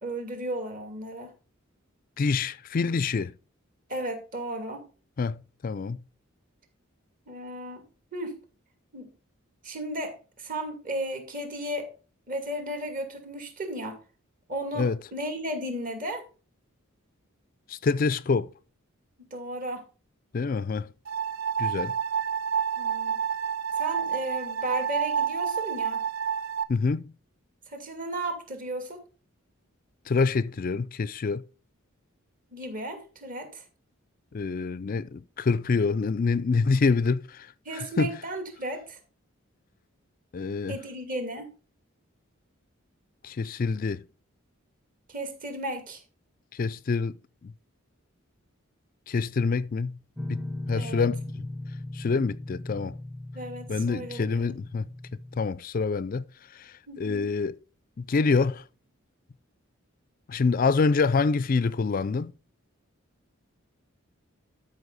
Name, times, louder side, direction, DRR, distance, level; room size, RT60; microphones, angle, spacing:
voice 1, 0.0-1.3 3.9-4.8 7.3-7.8 8.1-8.4 8.9-9.1 9.6-11.9 12.3-14.0 14.5-16.2 19.3-19.8 22.8-23.2 23.8-26.0 27.7-29.0 32.5-33.6 37.6-39.0 40.7-41.5 45.1-46.0 50.7-51.1 53.3-54.4 56.9-57.3, right 1 dB, 40° right, 2.6 m, -34 dB
voice 2, 2.2-3.3 5.2-6.0 14.8-15.0 17.7-18.5 20.3-20.9 21.6-21.9 26.7-27.1 30.1-31.4 34.3-37.5 37.7-38.1 40.3-40.8 43.2-44.0 46.5-47.2 47.4-47.5 49.1-49.9 50.3-51.5 51.9-53.0 53.7-54.8 55.4-56.3 56.5-57.6 58.0-58.6 60.3-62.3, left 4 dB, 40° left, 0.4 m, -26 dB
sound 1, 21.0-26.6, right 7 dB, 65° right, 1.0 m, -29 dB
Guitar, 50.2-55.4, left 1 dB, ahead, 0.6 m, -38 dB
12.5 x 5.6 x 4.1 m
head